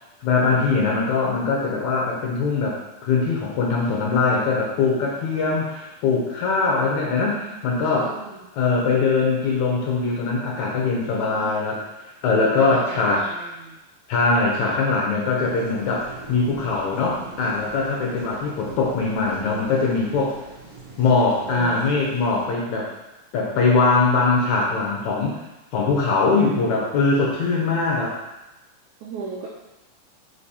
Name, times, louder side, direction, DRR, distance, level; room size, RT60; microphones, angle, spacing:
voice 1, 0.2-2.8 3.0-8.1 8.6-13.2 14.1-20.4 21.0-22.9 23.3-25.4 25.7-28.2, left 4 dB, 70° left, -2 dB, 1.9 m, -22 dB
voice 2, 7.5-8.4 11.3-11.6 12.4-13.8 21.4-21.9 29.0-29.5, right 6 dB, 80° right, -3 dB, 1.7 m, -37 dB
sound 1, 15.4-22.5, right 3 dB, 55° right, 1.8 m, -42 dB
5.3 x 5.1 x 4.2 m, 0.98 s
omnidirectional pair, 4.1 m